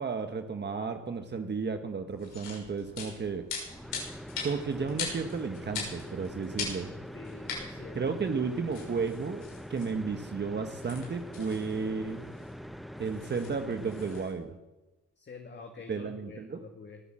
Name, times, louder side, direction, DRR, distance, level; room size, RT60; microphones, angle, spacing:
voice 1, 0.0-3.7 4.4-6.9 7.9-9.4 9.7-12.2 13.0-14.6 15.9-16.6, right 5 dB, 35° right, 6 dB, 1.2 m, -33 dB
sound 1, 2.1-14.3, left 5 dB, 90° left, 6.4 m, -42 dB
sound 2, 3.6-14.3, equal, ahead, 0.6 m, -44 dB
voice 2, 7.1-8.0 15.2-17.0, left 4 dB, 35° left, 3 dB, 1.9 m, -47 dB
20.5 x 8.0 x 7.6 m, 1.1 s
cardioid pair, 90°, 30 cm